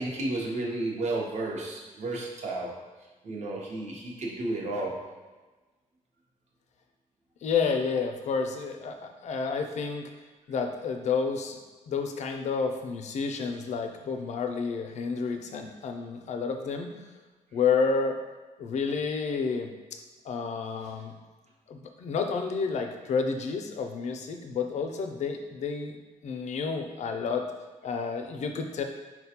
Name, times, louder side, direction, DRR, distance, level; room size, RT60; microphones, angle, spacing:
voice 1, 0.0-2.8 3.2-5.1, right 2 dB, 60° right, -2 dB, 0.7 m, -32 dB
voice 2, 7.4-10.0 10.5-11.6 11.9-17.0 17.5-18.2 18.6-19.7 20.2-21.1 21.7-26.0 26.2-27.5 27.8-28.8, left 5 dB, 60° left, 5 dB, 0.4 m, -30 dB
4.1 x 2.2 x 2.8 m, 1.2 s
cardioid pair, 115°, 13 cm